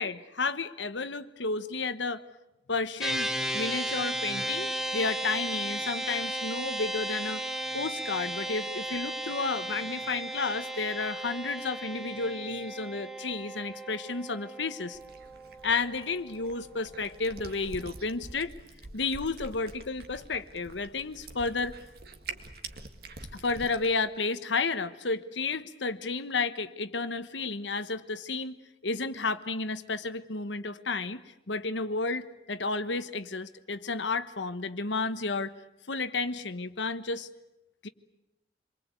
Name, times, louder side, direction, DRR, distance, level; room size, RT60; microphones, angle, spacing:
voice 1, 0.0-2.2 2.7-7.4 7.7-15.0 15.6-18.5 18.9-21.7 23.3-28.6 28.8-35.5 35.9-37.3 37.8-37.9, left 4 dB, 90° left, 11 dB, 1.2 m, -32 dB
sound 1, 3.0-16.5, right 1 dB, 5° right, 1.0 m, -35 dB
Cat, 14.9-23.9, right 3 dB, 55° right, 1.9 m, -46 dB
27.5 x 22.5 x 8.3 m, 0.92 s
head